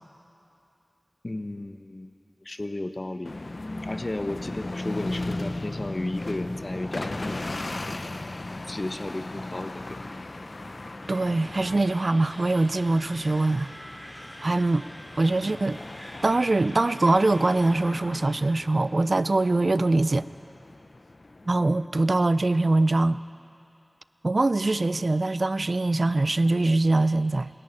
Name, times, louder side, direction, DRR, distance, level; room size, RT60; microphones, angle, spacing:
voice 1, 1.2-2.1 2.4-3.4 3.8-8.0 8.7-10.0, left 2 dB, 50° left, 8 dB, 1.0 m, -34 dB
sound 1, 3.2-21.9, left 2 dB, 70° left, 0.6 m, -37 dB
sound 2, 11.0-17.7, equal, 5° left, 4.1 m, -46 dB
voice 2, 11.1-13.7 14.4-14.9 15.2-15.8 16.2-20.3 21.5-23.2 24.2-27.5, right 2 dB, 75° right, 15 dB, 0.4 m, -23 dB
27.5 x 11.0 x 9.8 m, 2.7 s
wide cardioid pair, 50°, 0 cm